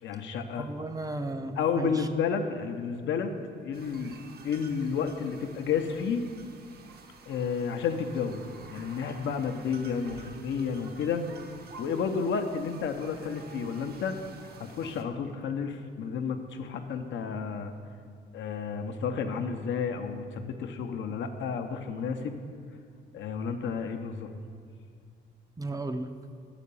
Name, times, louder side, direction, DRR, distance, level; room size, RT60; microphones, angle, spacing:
voice 1, 0.0-0.7 1.6-3.3 3.6-4.2 4.4-6.2 7.3-8.4 8.7-11.2 11.8-14.2 14.7-17.7 18.3-22.4 23.1-24.3, left 6 dB, 70° left, 6 dB, 0.7 m, -31 dB
voice 2, 0.5-2.1 25.6-26.1, right 2 dB, 20° right, 7 dB, 0.4 m, -34 dB
sound 1, 3.7-15.0, right 4 dB, 55° right, 0.8 m, -50 dB
6.5 x 4.9 x 6.9 m, 2.3 s
cardioid pair, 90°, 20 cm